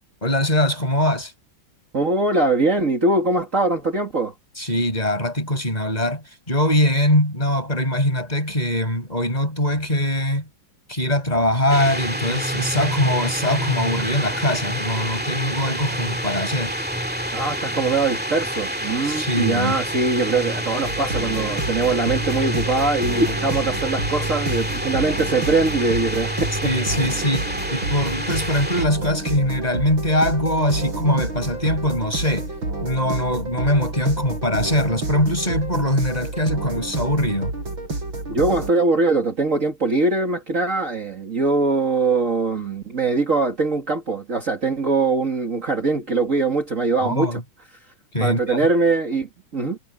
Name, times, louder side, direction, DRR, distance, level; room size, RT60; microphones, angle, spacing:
voice 1, 0.2-1.3 4.6-10.4 10.9-16.8 19.0-19.8 26.6-27.4 27.7-32.5 32.8-37.5 47.0-47.4 48.1-48.6, left 1 dB, 20° left, 6.8 m, -22 dB
voice 2, 1.9-4.3 17.3-26.7 27.0-27.1 38.3-47.4 48.2-49.8, right 3 dB, 40° right, 2.6 m, -22 dB
sound 1, 11.7-28.9, equal, 5° right, 1.9 m, -27 dB
sound 2, 20.8-38.7, right 2 dB, 80° right, 8.1 m, -29 dB
omnidirectional pair, 2.1 m